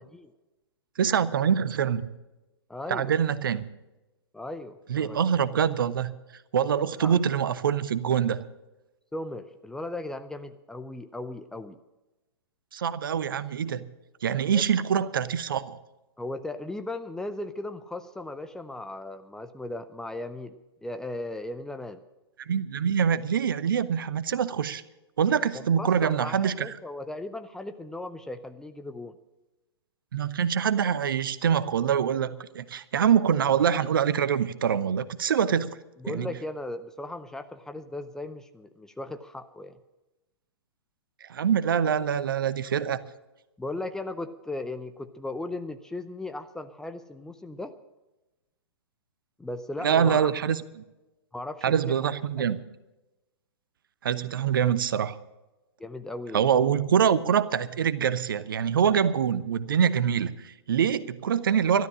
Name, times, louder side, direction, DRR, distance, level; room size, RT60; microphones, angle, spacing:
voice 1, 1.0-2.1 2.9-3.6 4.9-6.1 6.5-8.4 12.7-13.8 14.2-15.8 22.5-24.8 25.2-26.8 30.1-35.8 36.1-36.3 41.2-43.0 49.8-50.6 51.6-52.6 54.0-55.2 56.3-61.9, right 8 dB, 55° right, 15 dB, 0.8 m, -25 dB
voice 2, 2.7-3.2 4.3-5.2 7.0-7.1 9.1-11.8 14.4-14.7 16.2-20.6 20.8-22.0 25.5-29.2 36.0-39.8 43.6-47.7 49.4-50.3 51.3-52.1 52.4-52.5 55.8-56.5, left 2 dB, 5° left, 8 dB, 0.5 m, -37 dB
12.5 x 12.0 x 6.2 m, 1.0 s
figure-of-eight pair, 115°, 13 cm